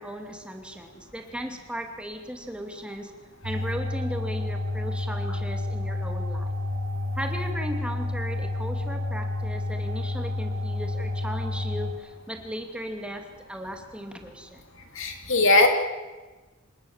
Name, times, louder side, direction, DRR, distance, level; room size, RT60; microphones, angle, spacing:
voice 1, 0.0-3.1 3.4-6.6 7.2-14.6, equal, 5° right, 4 dB, 2.6 m, -36 dB
sound 1, 3.4-11.9, left 2 dB, 85° right, 4.7 m, -30 dB
voice 2, 15.0-15.7, left 2 dB, 65° left, 4 dB, 2.9 m, -19 dB
26.5 x 19.0 x 7.5 m, 1.2 s
head